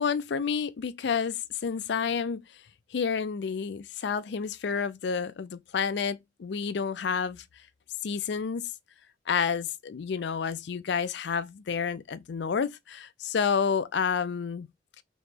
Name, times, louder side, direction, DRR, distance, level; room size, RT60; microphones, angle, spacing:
voice 1, 0.0-2.4 2.9-7.4 8.0-8.7 9.3-14.7, left 6 dB, 65° left, 0.4 m, -29 dB
3.8 x 3.1 x 3.5 m
head